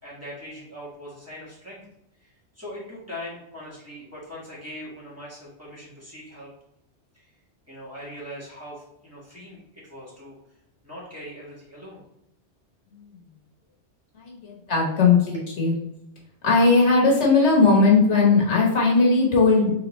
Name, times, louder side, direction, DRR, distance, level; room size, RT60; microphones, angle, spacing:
voice 1, 0.0-1.8 2.2-6.5 7.1-7.3 7.7-10.4 10.8-12.0, equal, 15° right, -9 dB, 1.5 m, -41 dB
voice 2, 14.1-15.7 16.4-19.7, left 4 dB, 80° left, -2 dB, 1.5 m, -18 dB
4.1 x 3.8 x 3.1 m, 0.81 s
omnidirectional pair, 1.2 m